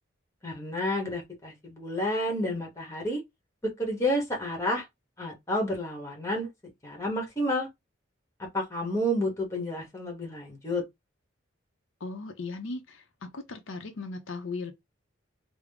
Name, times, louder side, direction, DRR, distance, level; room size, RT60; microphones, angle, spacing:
voice 1, 0.4-3.2 3.6-4.8 5.2-6.5 6.8-7.7 8.5-10.8, left 1 dB, 15° left, 1.1 m, -30 dB
voice 2, 12.0-14.7, left 3 dB, 80° left, 0.6 m, -37 dB
3.6 x 2.1 x 3.4 m
head